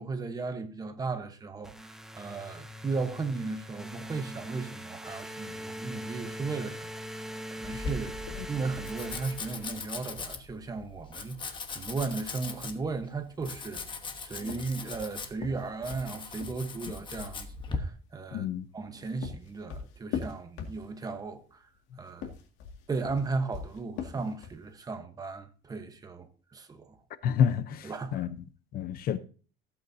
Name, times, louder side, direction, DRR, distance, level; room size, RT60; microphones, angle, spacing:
voice 1, 0.0-18.5 18.7-21.6 22.0-22.3 22.9-26.9 27.8-28.3, right 4 dB, 20° right, 1.1 m, -36 dB
sound 1, 1.6-10.0, equal, ahead, 0.7 m, -42 dB
Domestic sounds home sounds, 7.6-17.8, left 4 dB, 25° left, 1.1 m, -40 dB
sound 2, 14.4-17.0 18.7-21.2 22.1-24.7, left 7 dB, 70° left, 2.1 m, -40 dB
voice 2, 18.3-18.7 27.2-28.3 28.7-29.2, left 8 dB, 50° left, 0.7 m, -28 dB
15.5 x 8.3 x 2.7 m
cardioid pair, 165°, 20 cm